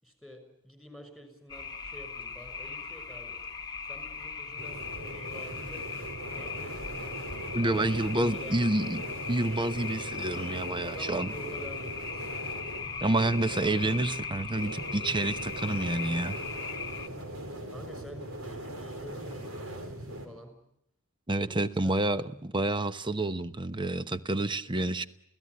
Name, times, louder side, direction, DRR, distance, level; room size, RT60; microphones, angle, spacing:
voice 1, 0.0-3.4 3.9-6.8 7.6-8.9 10.8-12.3 17.7-20.5 21.3-22.0 24.3-24.9, equal, 5° right, 6.2 m, -48 dB
sound 1, 1.5-17.1, left 5 dB, 20° left, 1.5 m, -39 dB
sound 2, 4.6-20.3, right 1 dB, 80° right, 4.7 m, -40 dB
voice 2, 7.5-9.0 9.3-11.3 13.0-16.4 21.3-25.1, right 2 dB, 25° right, 0.9 m, -29 dB
29.0 x 17.0 x 9.6 m
head